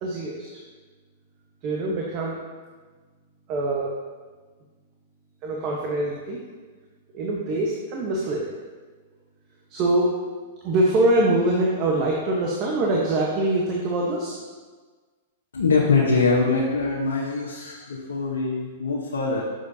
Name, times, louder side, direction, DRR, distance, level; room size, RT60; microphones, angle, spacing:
voice 1, 0.0-0.6 1.6-2.4 3.5-3.9 5.4-6.4 7.1-8.5 9.7-10.1 10.6-14.4, right 2 dB, 40° right, -2 dB, 1.1 m, -24 dB
voice 2, 15.5-19.4, left 4 dB, 85° left, -4 dB, 1.0 m, -23 dB
7.5 x 6.3 x 2.8 m, 1.4 s
hypercardioid pair, 120°, 0 cm